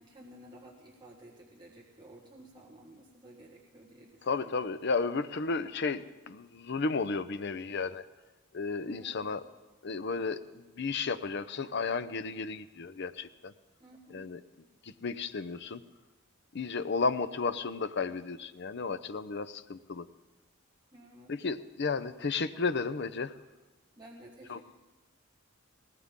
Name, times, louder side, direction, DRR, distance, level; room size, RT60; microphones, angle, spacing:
voice 1, 0.0-4.7 8.8-9.2 13.8-14.3 16.7-17.0 20.9-21.3 24.0-24.6, right 1 dB, 20° right, -3 dB, 1.5 m, -53 dB
voice 2, 4.2-8.1 8.5-9.4 9.8-13.5 14.1-14.4 14.8-15.8 16.5-20.1 21.3-23.3 24.5-24.6, left 4 dB, 55° left, 12 dB, 0.6 m, -33 dB
19.0 x 18.0 x 3.7 m, 1.2 s
head